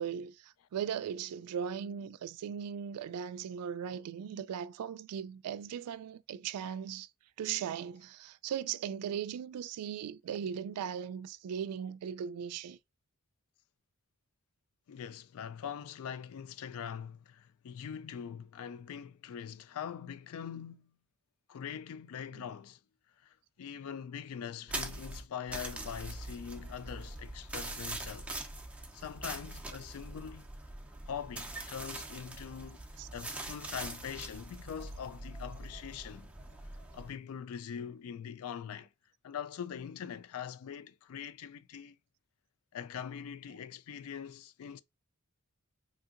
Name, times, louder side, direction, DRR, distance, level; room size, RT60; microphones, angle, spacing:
voice 1, 0.0-7.1 7.4-12.8 22.3-22.5 33.0-33.1, right 8 dB, 85° right, 0.3 m, -38 dB
voice 2, 14.9-20.9 21.5-22.8 23.2-28.4 28.9-30.5 31.1-32.9 33.1-36.3 36.9-38.9 39.2-42.0 42.7-44.8, left 8 dB, 70° left, 0.3 m, -43 dB
sound 1, 24.7-37.1, right 2 dB, 5° right, 0.5 m, -43 dB
3.5 x 2.7 x 2.4 m
head